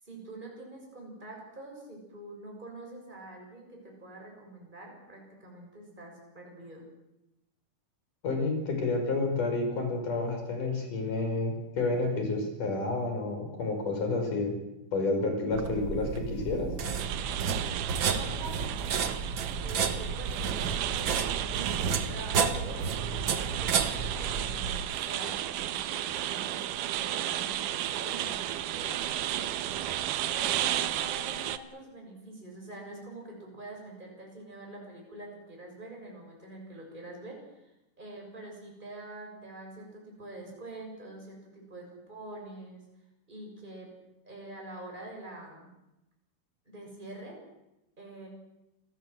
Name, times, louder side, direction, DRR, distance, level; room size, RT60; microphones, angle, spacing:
voice 1, 0.0-6.9 17.9-19.2 19.6-37.7 38.0-42.8 43.3-43.9 44.2-45.7 46.6-47.4 48.0-48.3, right 2 dB, 15° right, 0 dB, 6.9 m, -45 dB
voice 2, 8.2-14.5 14.9-16.7, left 3 dB, 75° left, 4 dB, 7.1 m, -30 dB
sound 1, 15.5-24.8, right 5 dB, 50° right, 1.7 m, -31 dB
sound 2, 17.0-31.6, right 12 dB, 80° right, 2.5 m, -33 dB
28.0 x 18.0 x 8.0 m, 0.93 s
omnidirectional pair, 3.7 m